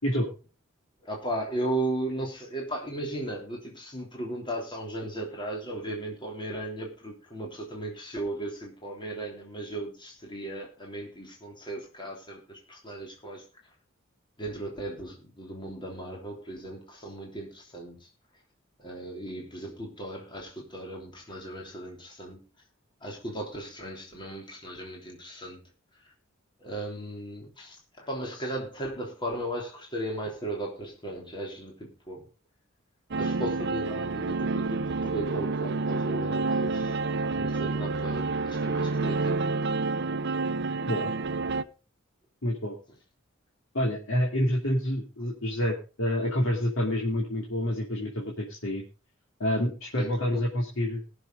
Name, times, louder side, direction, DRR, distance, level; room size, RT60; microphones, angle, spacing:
voice 1, 1.0-13.4 14.4-18.1 18.8-22.4 23.0-25.6 26.6-32.2 33.2-39.4 50.0-50.4, right 1 dB, 25° left, -1 dB, 3.2 m, -36 dB
sound 1, 33.1-41.6, right 3 dB, 60° right, 0.7 m, -29 dB
voice 2, 42.4-42.7 43.7-48.8 49.4-51.0, left 1 dB, 85° left, -2 dB, 2.7 m, -28 dB
20.5 x 7.0 x 3.8 m, 0.31 s
head